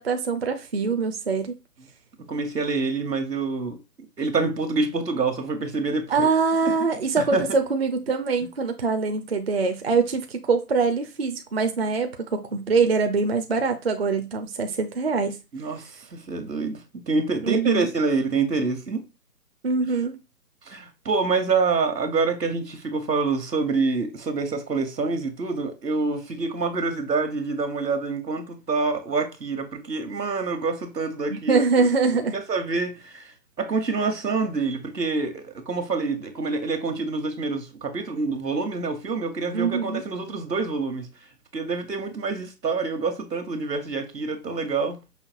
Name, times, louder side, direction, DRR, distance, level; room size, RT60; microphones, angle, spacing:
voice 1, 0.0-1.5 6.1-15.4 17.4-17.9 19.6-20.2 31.3-32.3 39.5-40.0, right 4 dB, 40° right, 0.5 m, -23 dB
voice 2, 2.3-3.8 4.2-6.3 6.6-6.7 7.2-7.4 15.5-19.0 20.7-31.9 32.3-41.1 41.5-45.0, right 4 dB, 85° right, 1.2 m, -26 dB
5.7 x 2.8 x 2.4 m
figure-of-eight pair, 140°, 48 cm